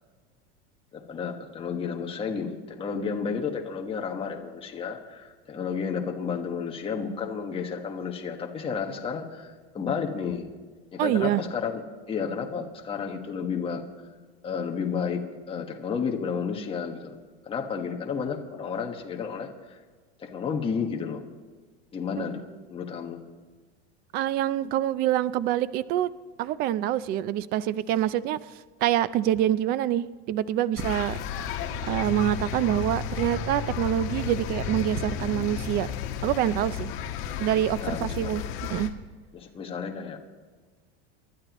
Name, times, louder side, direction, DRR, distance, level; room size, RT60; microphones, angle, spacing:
voice 1, 0.9-10.5 10.9-11.8 12.1-13.8 14.4-15.2 15.5-17.2 17.4-19.8 20.2-21.2 21.9-22.4 22.7-23.2 37.8-38.3 39.3-40.2, left 6 dB, 15° left, 2 dB, 1.4 m, -31 dB
voice 2, 11.0-11.4 24.1-26.1 26.4-28.4 28.8-31.2 31.9-35.9 36.2-36.9 37.4-38.4 38.7-38.9, right 12 dB, 30° right, 16 dB, 0.4 m, -26 dB
sound 1, 30.8-38.9, left 7 dB, 40° left, 1.3 m, -33 dB
29.5 x 12.5 x 3.0 m, 1.4 s
supercardioid pair, 160°, 33 cm